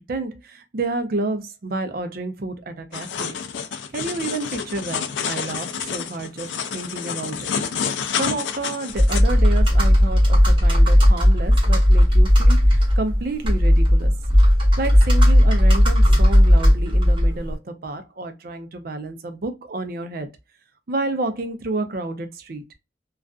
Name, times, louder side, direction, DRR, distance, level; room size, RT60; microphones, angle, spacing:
voice 1, 0.0-3.4 3.9-7.5 8.2-14.1 14.8-20.3 20.9-22.6, right 2 dB, 50° right, 0.5 m, -30 dB
sound 1, 2.9-9.2, left 7 dB, 80° left, 0.4 m, -29 dB
Computer keyboard, 8.9-17.5, equal, 30° right, 1.0 m, -15 dB
2.4 x 2.3 x 2.3 m
head